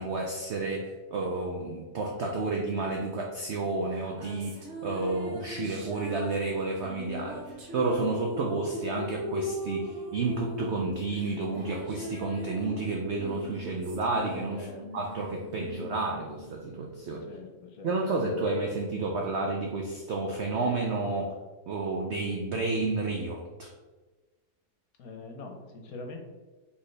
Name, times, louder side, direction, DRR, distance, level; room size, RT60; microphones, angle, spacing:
voice 1, 0.0-14.7 14.9-17.3 17.8-21.4 21.7-23.7, right 3 dB, 75° right, 1 dB, 0.6 m, -31 dB
sound 1, 3.9-17.6, left 1 dB, 50° right, 1.1 m, -40 dB
voice 2, 17.2-18.0 25.0-26.2, left 3 dB, 65° left, 3 dB, 1.1 m, -43 dB
4.2 x 3.7 x 3.2 m, 1.3 s
omnidirectional pair, 1.8 m